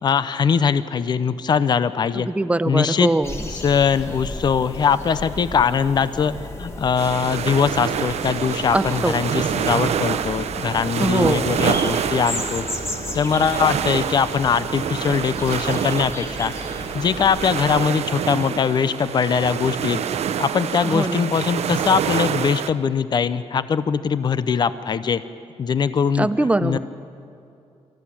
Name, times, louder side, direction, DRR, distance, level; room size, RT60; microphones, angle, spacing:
voice 1, 0.0-2.3 2.7-3.1 3.5-6.3 6.6-12.7 13.1-16.5 16.9-20.0 20.4-25.2 25.6-26.3 26.6-26.8, left 6 dB, 40° left, 14 dB, 0.6 m, -21 dB
voice 2, 2.1-3.5 8.7-9.2 11.0-11.6 20.8-21.3 26.2-26.8, right 2 dB, 10° right, 12 dB, 0.6 m, -22 dB
sound 1, 3.2-17.9, left 1 dB, 25° left, 1.9 m, -34 dB
sound 2, 7.0-22.7, right 8 dB, 65° right, 0.8 m, -26 dB
25.5 x 14.5 x 10.0 m, 2.5 s
wide cardioid pair, 145°, 12 cm